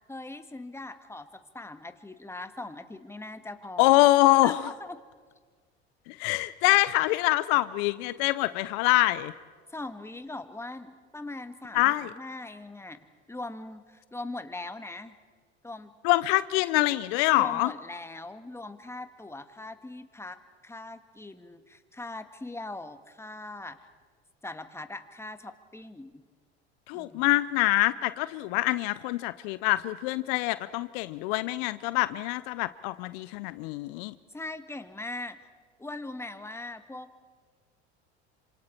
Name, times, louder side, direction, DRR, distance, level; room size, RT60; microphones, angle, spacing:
voice 1, 0.1-1.3 1.5-4.0 4.4-5.0 9.7-13.0 13.3-15.1 15.6-15.9 17.4-23.8 24.4-26.2 26.9-27.3 34.3-35.4 35.8-37.1, left 2 dB, 10° left, 9 dB, 1.5 m, -40 dB
voice 2, 3.8-4.6 6.1-9.3 11.7-12.1 16.0-17.7 26.9-34.1, left 18 dB, 65° left, 16 dB, 0.7 m, -25 dB
28.0 x 26.0 x 4.4 m, 1.5 s
hypercardioid pair, 75°, 33 cm